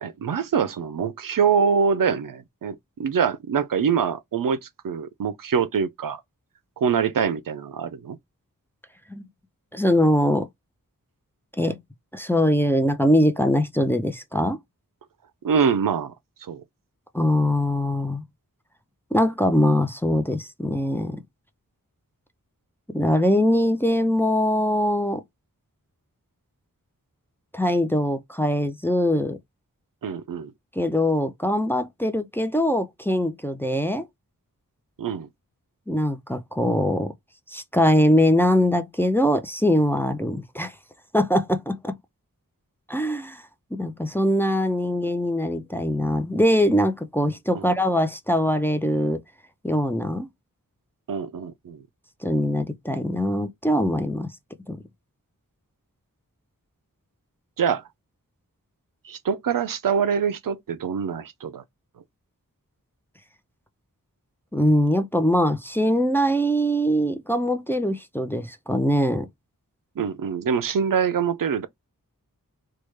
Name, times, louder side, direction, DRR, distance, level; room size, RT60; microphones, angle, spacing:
voice 1, 0.0-4.6 4.8-6.2 6.8-8.2 15.4-16.1 16.4-16.6 30.0-30.5 35.0-35.3 47.5-47.7 51.1-51.8 57.6-57.8 59.0-61.6 70.0-71.7, right 6 dB, 75° right, 0.5 m, -24 dB
voice 2, 9.7-10.5 11.6-11.8 12.1-14.6 17.1-18.2 19.1-21.2 22.9-25.2 27.5-29.4 30.8-34.1 35.9-37.1 37.5-40.7 41.1-41.9 42.9-43.4 43.7-49.2 49.6-50.3 52.2-54.3 54.7-54.8 64.5-69.3, equal, 5° left, 0.5 m, -22 dB
3.2 x 2.3 x 3.1 m
wide cardioid pair, 55°, 34 cm